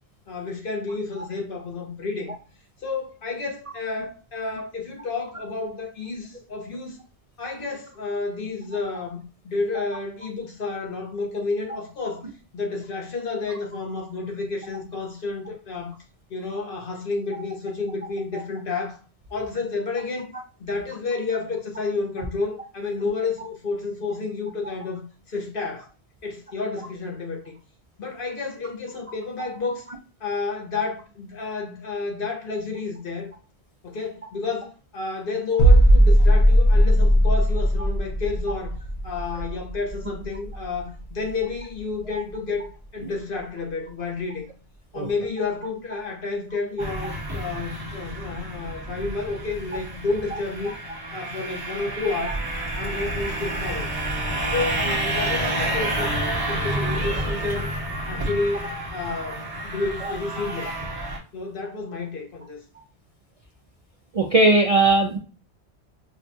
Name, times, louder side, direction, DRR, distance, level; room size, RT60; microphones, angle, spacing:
voice 1, 0.3-2.3 2.8-7.0 7.4-12.2 12.5-15.9 16.3-19.0 19.3-20.3 20.6-25.9 26.2-27.5 28.0-29.9 30.2-33.3 33.8-38.8 39.0-44.5 44.9-50.7 51.1-52.4 52.7-53.9 54.5-56.2 56.5-57.7 58.0-60.7 61.3-62.6, left 3 dB, 55° left, 1.1 m, -30 dB
sound 1, 35.6-41.3 41.6-41.8, equal, 70° left, 1.3 m, -18 dB
sound 2, 46.8-61.2, right 1 dB, 25° right, 0.8 m, -29 dB
voice 2, 64.1-65.2, right 2 dB, 50° right, 0.4 m, -19 dB
4.9 x 2.3 x 2.6 m
omnidirectional pair, 1.1 m